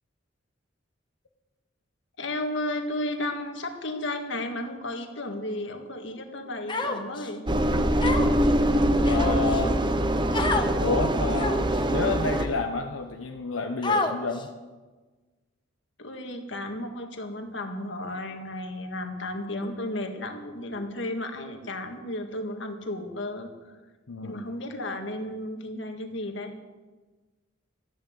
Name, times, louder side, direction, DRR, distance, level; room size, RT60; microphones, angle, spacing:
voice 1, 2.2-7.5 16.0-23.5 24.2-26.5, left 1 dB, 65° left, 4 dB, 1.8 m, -33 dB
Human voice, 6.7-7.3 8.0-8.5 9.0-9.6 10.3-10.7 11.3-11.8 12.5-12.6 13.8-14.4, left 2 dB, 25° left, 1.1 m, -28 dB
Engine, 7.5-12.5, right 1 dB, 25° right, 0.9 m, -23 dB
voice 2, 9.1-9.8 10.8-14.5 24.1-24.5, left 3 dB, 90° left, 3 dB, 1.0 m, -30 dB
13.5 x 11.0 x 8.0 m, 1.3 s
head